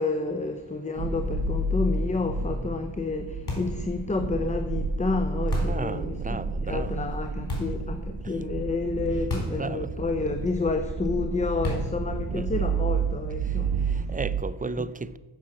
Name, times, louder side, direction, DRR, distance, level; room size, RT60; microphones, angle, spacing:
voice 1, 0.0-14.0 14.8-14.9, left 3 dB, 15° left, 0.7 m, -30 dB
sound 1, 1.0-14.4, right 3 dB, 60° right, 1.2 m, -30 dB
sound 2, 3.5-3.9 5.5-5.9 7.5-7.8 9.3-9.7 9.9-10.0 11.6-12.0, left 3 dB, 55° left, 3.5 m, -32 dB
voice 2, 5.5-6.9 8.2-8.4 9.4-9.9 12.3-12.7 13.9-15.2, right 4 dB, 20° right, 0.4 m, -34 dB
7.1 x 6.3 x 7.6 m
cardioid pair, 45°, 48 cm